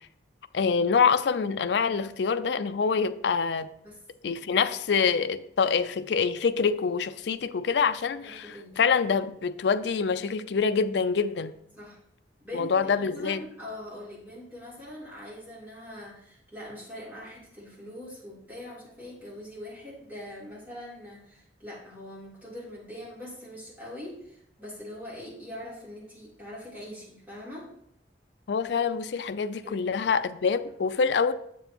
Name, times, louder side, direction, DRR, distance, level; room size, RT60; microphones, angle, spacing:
voice 1, 0.5-3.7 4.2-11.5 12.5-13.4 28.5-31.3, left 5 dB, 70° left, 0.4 m, -26 dB
voice 2, 8.2-8.8 11.7-12.1 12.4-27.7 29.6-29.8, left 1 dB, 10° right, 3.4 m, -42 dB
8.0 x 7.0 x 3.0 m
head